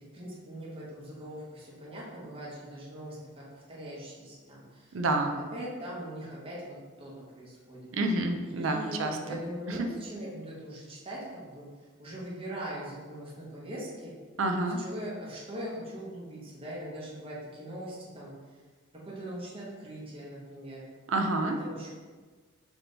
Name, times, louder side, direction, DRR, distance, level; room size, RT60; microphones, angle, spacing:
voice 1, 0.1-4.9 5.2-7.9 8.4-11.7 12.0-14.1 14.8-18.3 18.9-20.8 21.4-21.9, equal, 30° right, -5 dB, 0.9 m, -41 dB
voice 2, 4.9-5.4 7.9-9.2 9.7-9.9 14.4-14.8 21.1-21.6, right 2 dB, 75° right, 5 dB, 0.5 m, -28 dB
3.5 x 2.9 x 3.9 m, 1.4 s
head